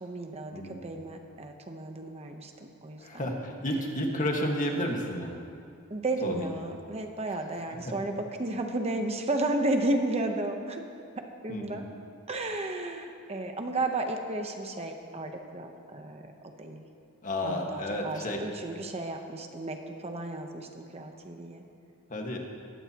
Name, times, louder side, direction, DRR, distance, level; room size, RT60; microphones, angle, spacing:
voice 1, 0.0-3.3 5.9-10.8 11.4-11.8 12.3-16.8 17.4-21.6, right 2 dB, 30° right, 4 dB, 0.9 m, -33 dB
voice 2, 3.0-5.4 6.2-6.5 7.5-7.6 11.5-11.8 17.2-18.4 22.1-22.4, left 1 dB, 35° left, 1 dB, 1.6 m, -31 dB
19.5 x 15.5 x 3.0 m, 2.4 s
head